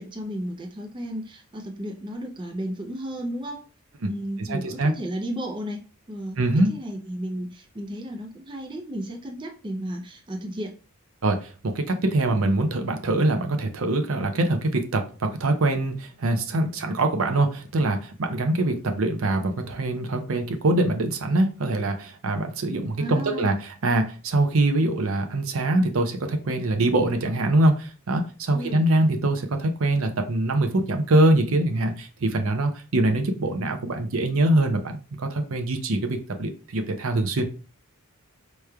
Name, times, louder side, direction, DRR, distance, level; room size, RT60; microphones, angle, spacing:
voice 1, 0.0-3.6 4.0-6.4 6.7-10.7 23.0-23.5 28.5-28.8, equal, 20° right, 2 dB, 0.4 m, -33 dB
voice 2, 4.4-4.9 6.4-6.7 11.2-37.4, right 2 dB, 70° right, 5 dB, 0.6 m, -23 dB
4.8 x 3.0 x 2.2 m, 0.35 s
head